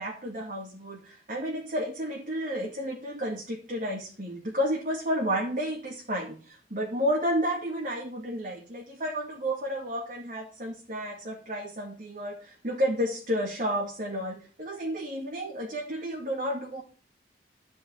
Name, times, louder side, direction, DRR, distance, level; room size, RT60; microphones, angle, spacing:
voice 1, 0.0-16.8, equal, 50° right, -1 dB, 2.4 m, -31 dB
12.0 x 5.4 x 8.5 m, 0.39 s
head